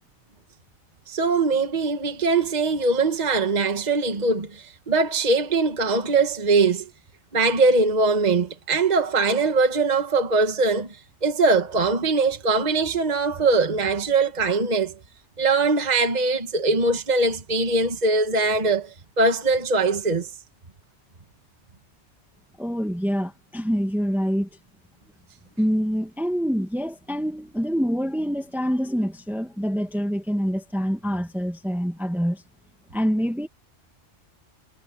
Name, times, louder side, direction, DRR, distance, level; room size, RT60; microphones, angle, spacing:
voice 1, 1.1-6.9 7.3-15.0 15.4-20.3, right 3 dB, 35° right, 1.5 m, -22 dB
voice 2, 22.6-24.5 25.6-32.4 32.9-33.5, equal, ahead, 1.7 m, -26 dB
omnidirectional pair, 1.2 m